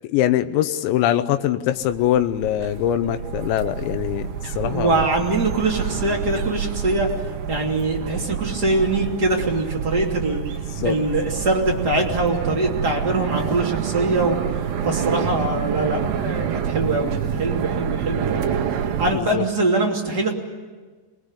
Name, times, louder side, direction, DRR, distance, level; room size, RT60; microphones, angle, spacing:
voice 1, 0.1-5.1 10.8-11.0 19.1-19.5, left 12 dB, 80° left, 9 dB, 3.3 m, -23 dB
sound 1, 1.8-19.1, right 8 dB, 70° right, 3.4 m, -28 dB
voice 2, 4.6-7.1 7.5-10.4 10.8-14.4 14.8-18.5 19.0-20.3, right 2 dB, 25° right, -1 dB, 2.8 m, -23 dB
27.0 x 20.5 x 10.0 m, 1.4 s
omnidirectional pair, 5.2 m